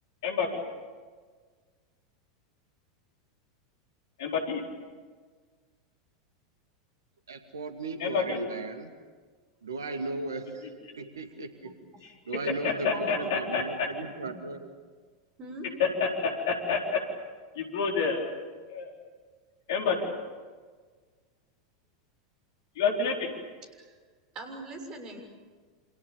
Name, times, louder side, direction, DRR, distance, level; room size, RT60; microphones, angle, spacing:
voice 1, 0.2-0.6 4.2-4.6 8.0-8.4 12.6-13.9 15.8-17.0 17.6-18.2 18.7-18.9 19.7-20.1 22.8-23.3, left 5 dB, 55° left, 2 dB, 4.4 m, -28 dB
voice 2, 7.3-8.9 9.6-10.7 11.0-11.7 12.3-14.7, right 3 dB, 70° right, 7 dB, 2.3 m, -36 dB
voice 3, 23.6-23.9 24.3-25.2, right 2 dB, 35° right, 5 dB, 6.7 m, -42 dB
29.0 x 27.5 x 7.1 m, 1.5 s
figure-of-eight pair, 85°, 2 cm